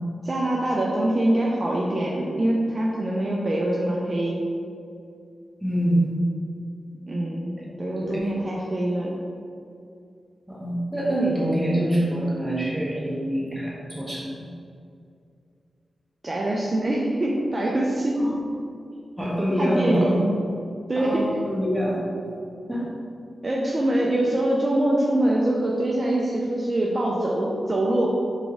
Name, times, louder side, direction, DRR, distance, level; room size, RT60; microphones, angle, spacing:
voice 1, 0.2-4.4 7.1-9.2 16.2-18.2 19.6-20.3 20.9-21.3 23.4-28.1, right 1 dB, 35° right, -3 dB, 0.5 m, -24 dB
voice 2, 5.6-6.1 8.0-8.3 10.5-14.5 18.2-18.4 19.2-20.1 20.9-22.0 22.7-22.9, right 1 dB, 5° right, -6 dB, 1.2 m, -25 dB
4.0 x 3.5 x 3.5 m, 2.4 s
wide cardioid pair, 85°, 0 cm